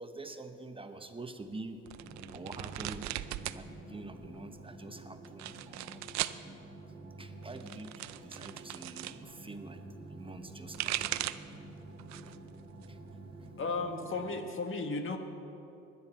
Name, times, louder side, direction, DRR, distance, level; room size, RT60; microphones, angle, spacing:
voice 1, 0.0-1.8 2.3-3.0 3.6-6.0 7.2-11.1 12.9-13.0, right 2 dB, 20° right, 7 dB, 1.1 m, -46 dB
sound 1, 1.9-14.4, right 2 dB, 40° right, 2.5 m, -49 dB
sound 2, 1.9-3.6 3.9-4.6 5.2-6.4 7.4-9.2 10.4-11.5 12.0-12.4 12.8-13.8, right 15 dB, 70° right, 0.5 m, -38 dB
voice 2, 13.6-15.2, left 3 dB, 45° left, 6 dB, 1.6 m, -34 dB
21.0 x 9.6 x 4.4 m, 2.9 s
supercardioid pair, 80°, 29 cm